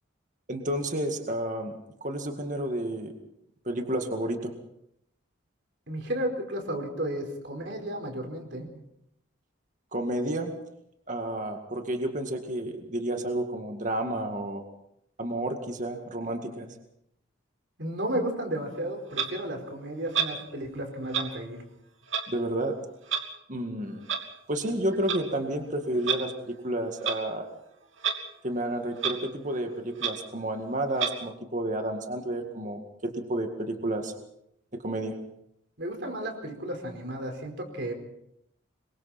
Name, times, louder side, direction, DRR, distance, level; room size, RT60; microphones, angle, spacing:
voice 1, 0.5-1.7 2.0-3.1 3.7-4.5 9.9-10.5 11.1-14.6 15.2-16.7 22.3-22.8 23.5-24.1 24.5-27.5 28.4-34.1 34.8-35.2, right 1 dB, 40° right, 4 dB, 2.0 m, -31 dB
voice 2, 5.9-8.7 17.8-21.6 35.8-37.9, right 1 dB, 60° right, 4 dB, 4.7 m, -33 dB
Clock, 19.1-19.3 20.1-20.4 21.1-21.3 22.1-22.3 23.1-23.2 24.1-24.2 24.9-25.2 26.0-26.2 27.0-27.2 28.0-28.2 28.5-28.6 29.0-29.2 29.6-29.7 30.0-30.1 31.0-31.1, right 8 dB, 75° right, 2.8 m, -28 dB
26.0 x 23.0 x 4.4 m, 0.77 s
head